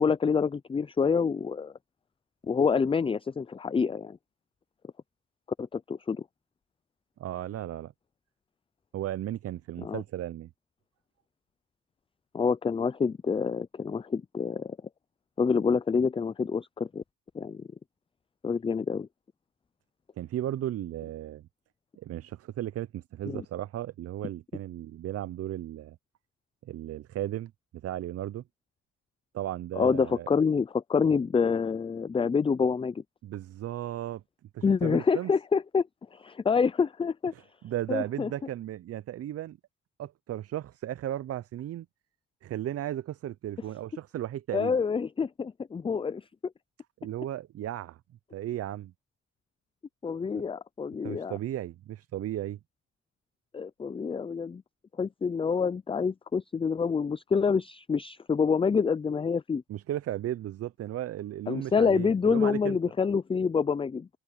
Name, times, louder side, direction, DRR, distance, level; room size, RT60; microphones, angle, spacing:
voice 1, 0.0-1.7 2.5-4.2 5.6-6.2 9.8-10.0 12.3-14.8 15.4-17.0 17.3-17.7 18.4-19.1 23.3-23.4 29.7-33.0 34.6-35.8 36.1-37.3 37.9-38.3 44.5-46.2 50.0-51.4 53.5-54.6 55.0-59.6 61.5-64.1, left 5 dB, 20° left, 0.4 m, -27 dB
voice 2, 7.2-7.9 8.9-10.5 20.2-21.5 22.0-26.0 26.6-28.4 29.3-30.3 33.2-34.2 34.5-35.3 37.3-39.6 40.0-41.9 42.4-44.8 47.0-48.0 48.3-48.9 51.0-52.6 59.7-62.8, right 12 dB, 55° right, 0.5 m, -35 dB
cardioid pair, 90°, 30 cm